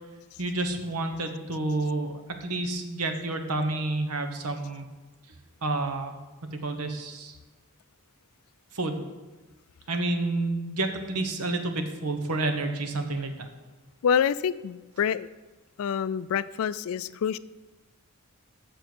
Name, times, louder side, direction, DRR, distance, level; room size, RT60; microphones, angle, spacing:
voice 1, 0.4-2.1 2.4-4.9 5.3-5.4 5.6-6.2 6.5-7.4 8.7-9.0 9.9-13.5, right 2 dB, 90° right, 6 dB, 1.0 m, -29 dB
voice 2, 14.0-15.3 15.8-17.4, left 7 dB, 65° left, 17 dB, 0.3 m, -27 dB
7.1 x 6.8 x 6.1 m, 1.2 s
head